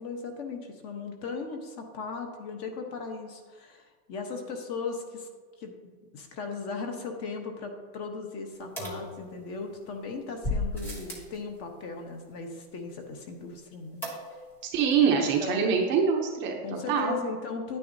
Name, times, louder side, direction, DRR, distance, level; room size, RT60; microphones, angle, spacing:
voice 1, 0.0-5.3 5.6-14.0 15.4-15.7 16.6-17.8, left 4 dB, 30° left, 4 dB, 1.0 m, -37 dB
sound 1, 8.8-9.7 10.4-11.4 14.0-14.6 14.9-15.0 15.2-15.3, left 2 dB, 5° left, 0.3 m, -34 dB
voice 2, 14.7-16.6 16.9-17.2, right 6 dB, 25° right, 1 dB, 0.7 m, -24 dB
10.0 x 9.2 x 2.7 m, 1.5 s
supercardioid pair, 155°, 46 cm